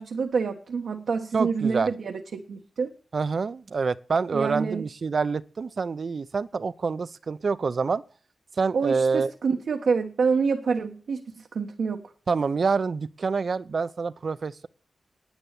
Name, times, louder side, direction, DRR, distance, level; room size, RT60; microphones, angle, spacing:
voice 1, 0.0-2.9 4.3-4.8 8.7-11.2 11.5-12.0, right 5 dB, 80° right, 1.3 m, -27 dB
voice 2, 1.3-1.9 3.1-8.0 8.6-9.3 12.3-14.7, right 4 dB, 60° right, 0.6 m, -27 dB
10.5 x 9.1 x 8.3 m
cardioid pair, 70°, 0 cm